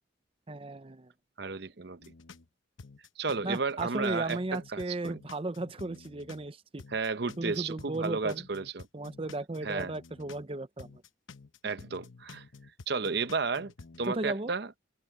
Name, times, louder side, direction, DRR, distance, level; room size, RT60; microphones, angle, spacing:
voice 1, 0.5-1.1 3.4-6.8 7.4-8.4 8.9-10.9 14.1-14.5, right 2 dB, 30° right, 0.6 m, -35 dB
voice 2, 1.4-2.0 3.2-5.2 6.9-8.9 9.6-9.9 11.6-12.4 12.9-13.7 14.0-14.7, right 4 dB, 55° right, 0.8 m, -33 dB
sound 1, 2.0-2.5 2.8-6.5 6.8-10.5 10.8-14.1, left 4 dB, 80° left, 0.9 m, -51 dB
head